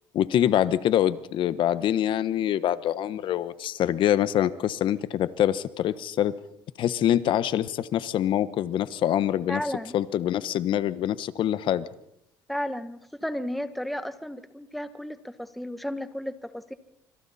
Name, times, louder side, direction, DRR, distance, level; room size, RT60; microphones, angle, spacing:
voice 1, 0.1-6.3 6.8-9.6 9.9-11.8, left 11 dB, 60° left, 15 dB, 1.2 m, -25 dB
voice 2, 9.5-9.9 12.5-16.7, equal, ahead, 11 dB, 1.5 m, -33 dB
26.0 x 25.5 x 4.3 m, 0.80 s
supercardioid pair, 90°, 9 cm